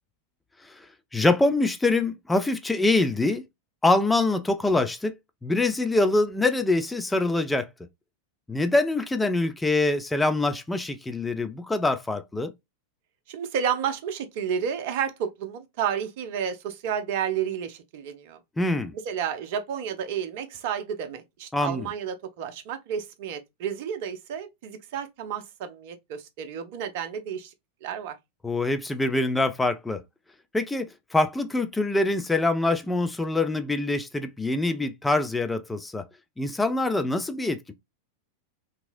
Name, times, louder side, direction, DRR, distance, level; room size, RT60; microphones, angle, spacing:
voice 1, 1.1-3.5 3.8-5.1 5.4-7.7 8.5-12.5 18.6-18.9 21.5-21.9 28.4-30.0 30.5-36.0 36.4-37.7, left 2 dB, 10° left, 0.4 m, -24 dB
voice 2, 13.3-18.4 18.9-27.5 27.8-28.2, right 8 dB, 50° right, 0.6 m, -31 dB
2.8 x 2.7 x 2.4 m
figure-of-eight pair, 90°, 0 cm